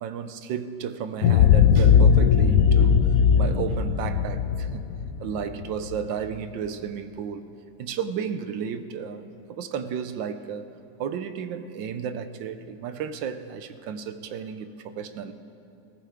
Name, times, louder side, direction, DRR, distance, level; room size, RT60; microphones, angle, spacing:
voice 1, 0.0-4.9 5.2-7.5 7.8-10.7 11.0-15.3, right 7 dB, 75° right, 10 dB, 1.4 m, -33 dB
sound 1, 1.2-6.0, left 7 dB, 70° left, 0.8 m, -19 dB
19.5 x 17.5 x 3.5 m, 2.6 s
omnidirectional pair, 2.1 m